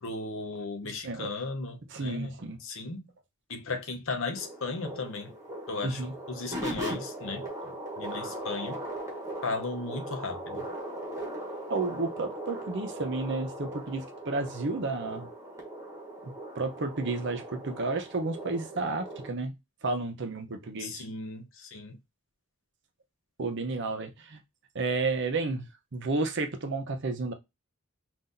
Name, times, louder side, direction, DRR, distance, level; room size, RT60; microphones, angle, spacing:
voice 1, 0.0-3.1 3.5-5.3 5.7-8.8 9.4-10.7 20.8-22.0, left 3 dB, 60° left, 0.8 m, -36 dB
voice 2, 1.9-2.6 5.8-6.1 11.7-15.3 16.2-19.5 19.8-21.0 23.4-24.4 24.7-25.7 25.9-27.3, right 3 dB, 55° right, 0.7 m, -32 dB
sound 1, 4.3-19.3, right 1 dB, 15° right, 1.2 m, -39 dB
5.7 x 2.6 x 2.6 m
head